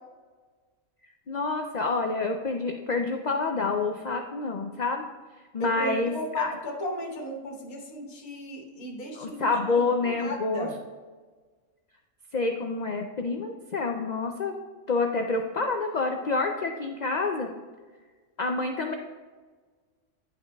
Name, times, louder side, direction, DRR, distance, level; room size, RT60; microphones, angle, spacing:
voice 1, 1.3-5.0 5.5-6.6 9.1-10.7 12.3-14.5 14.9-17.5 18.4-18.9, left 3 dB, 65° left, 3 dB, 0.4 m, -28 dB
voice 2, 5.6-10.7, left 1 dB, 85° left, 0 dB, 1.7 m, -35 dB
11.0 x 5.6 x 2.3 m, 1.4 s
omnidirectional pair, 1.4 m